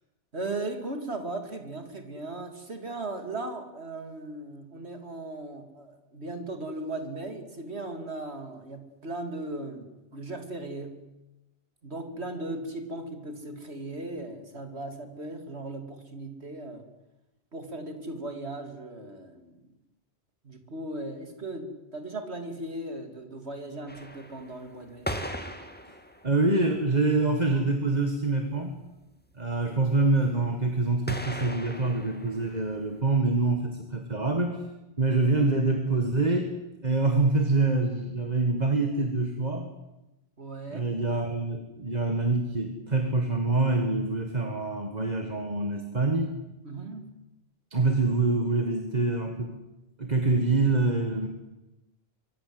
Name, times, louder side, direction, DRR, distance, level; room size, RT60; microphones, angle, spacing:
voice 1, 0.3-11.0 11.8-16.9 17.5-19.6 20.4-25.1 40.4-40.9 46.6-47.1, right 2 dB, 85° right, 6 dB, 3.3 m, -37 dB
sound 1, 23.9-26.7 27.3-27.4 27.6-27.7 27.9-28.0 28.3-28.7 31.1-33.0, equal, 10° left, 2.2 m, -38 dB
voice 2, 26.2-28.8 29.3-34.7 35.0-36.5 36.8-39.7 40.7-46.3 47.7-49.6 50.0-51.3, right 3 dB, 40° right, 5 dB, 2.1 m, -25 dB
24.5 x 24.0 x 8.0 m, 0.98 s
omnidirectional pair, 1.1 m